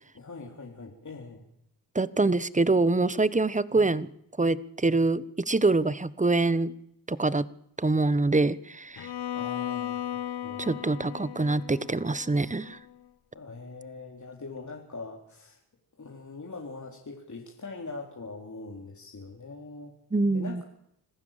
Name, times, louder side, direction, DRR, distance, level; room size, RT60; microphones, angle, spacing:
voice 1, 0.1-1.4 3.7-3.9 9.3-10.9 13.3-15.6 16.0-19.9 20.3-20.6, left 3 dB, 35° left, 0 dB, 3.9 m, -42 dB
voice 2, 1.9-4.1 4.4-6.7 7.1-7.5 7.8-9.1 10.6-12.8 20.1-20.6, right 3 dB, 15° right, 17 dB, 1.2 m, -25 dB
Bowed string instrument, 9.0-13.0, left 11 dB, 50° left, 1.0 m, -36 dB
26.5 x 15.0 x 7.5 m, 0.76 s
supercardioid pair, 60°, 49 cm